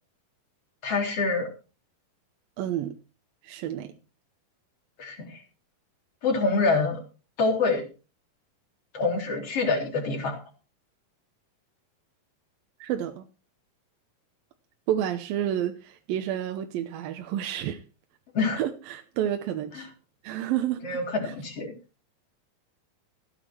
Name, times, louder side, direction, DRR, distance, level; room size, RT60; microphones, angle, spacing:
voice 1, 0.8-1.5 5.0-5.4 6.2-7.0 7.4-7.9 8.9-10.4 18.3-18.6 20.8-21.7, left 3 dB, 40° left, 1 dB, 4.4 m, -26 dB
voice 2, 2.6-3.0 3.4-4.0 12.8-13.2 14.9-17.8 18.6-19.9 20.2-21.0 21.2-21.3, right 11 dB, 80° right, 6 dB, 2.6 m, -30 dB
16.0 x 9.1 x 4.5 m, 0.34 s
omnidirectional pair, 4.3 m